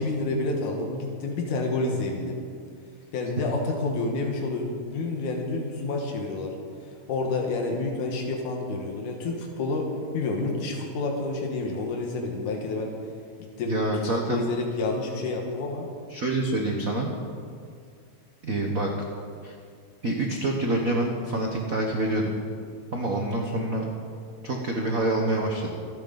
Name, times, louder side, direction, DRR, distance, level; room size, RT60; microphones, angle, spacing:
voice 1, 0.0-2.4 3.1-6.5 6.8-12.9 13.6-15.9, left 3 dB, 85° left, 1 dB, 2.9 m, -29 dB
voice 2, 13.7-14.4 16.1-17.1 18.4-18.9 19.4-19.5 20.0-22.3 22.9-23.8 24.4-25.8, right 1 dB, 65° right, 0 dB, 0.8 m, -26 dB
26.0 x 9.5 x 4.0 m, 2.2 s
omnidirectional pair, 3.4 m